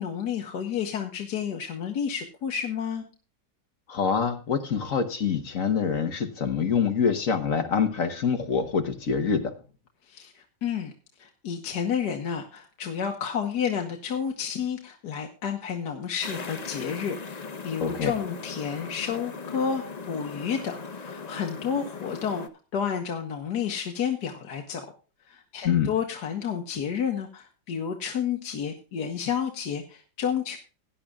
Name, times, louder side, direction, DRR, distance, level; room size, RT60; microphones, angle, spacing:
voice 1, 0.0-3.0 10.1-10.9 11.2-22.5 22.7-24.9 25.3-30.6, left 7 dB, 65° left, 3 dB, 1.7 m, -30 dB
voice 2, 3.9-9.5 17.8-18.1 25.6-25.9, left 6 dB, 50° left, 7 dB, 1.4 m, -25 dB
sound 1, 16.2-22.5, left 4 dB, 35° left, 0.7 m, -39 dB
17.5 x 10.0 x 2.4 m, 0.35 s
omnidirectional pair, 2.0 m